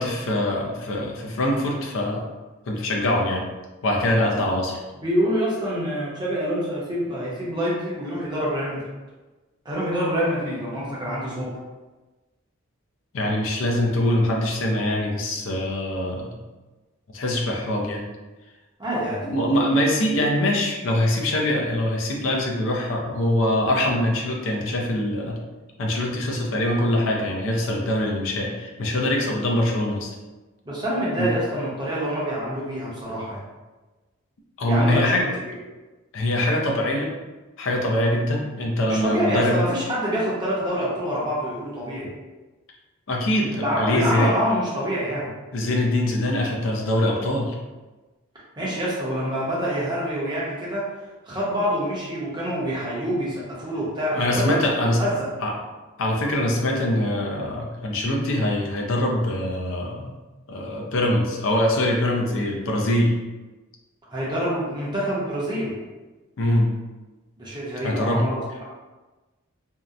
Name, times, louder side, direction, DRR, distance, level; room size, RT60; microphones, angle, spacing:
voice 1, 0.0-2.3 2.7-3.5 3.8-4.8 13.1-16.4 17.1-18.0 19.2-25.4 25.8-30.1 31.2-31.3 34.6-35.3 36.1-37.1 37.6-39.6 43.1-44.3 45.5-47.6 54.1-55.1 55.4-55.5 56.0-60.1 60.5-63.1 66.4-66.7 67.8-68.3, left 1 dB, 65° left, 0 dB, 0.5 m, -23 dB
voice 2, 5.0-8.8 9.6-11.6 18.8-19.2 30.7-33.4 34.6-35.1 38.9-42.1 43.5-45.3 48.6-50.9 51.3-54.6 55.0-55.3 64.1-65.8 67.4-68.6, equal, 20° right, -6 dB, 0.6 m, -26 dB
2.7 x 2.0 x 2.4 m, 1.2 s
head